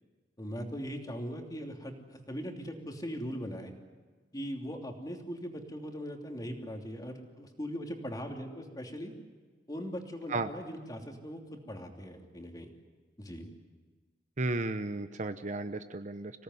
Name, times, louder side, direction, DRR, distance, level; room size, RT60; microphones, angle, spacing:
voice 1, 0.4-3.7 4.3-9.1 9.7-12.7 13.2-13.5, equal, 20° left, 2 dB, 3.0 m, -40 dB
voice 2, 14.4-16.3, right 2 dB, 45° right, 10 dB, 0.9 m, -34 dB
26.0 x 18.0 x 9.7 m, 1.4 s
head